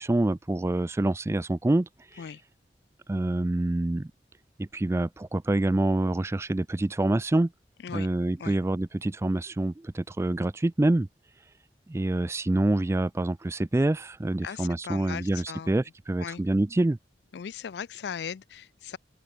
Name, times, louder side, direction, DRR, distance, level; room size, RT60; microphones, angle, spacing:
voice 1, 0.0-2.2 3.1-4.1 4.6-7.5 7.9-11.1 11.9-17.0, right 2 dB, 15° right, 0.3 m, -26 dB
voice 2, 14.4-15.7 16.2-16.4 17.3-19.0, left 7 dB, 75° left, 0.4 m, -38 dB
open air
head